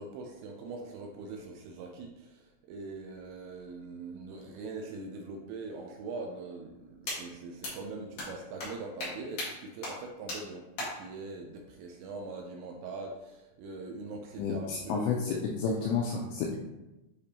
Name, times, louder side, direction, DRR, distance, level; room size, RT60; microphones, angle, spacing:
voice 1, 0.0-15.1 15.6-15.9, right 3 dB, 85° right, 2 dB, 2.6 m, -42 dB
sound 1, 7.1-7.2 7.6-7.7 8.2-8.3 8.6-8.7 9.0-9.1 9.4-9.5 9.8-9.9 10.3-10.4 10.8-10.9, left 2 dB, 55° left, 2.6 m, -35 dB
voice 2, 14.4-16.6, left 5 dB, 90° left, -1 dB, 2.5 m, -31 dB
9.9 x 3.4 x 2.8 m, 1.0 s
omnidirectional pair, 5.6 m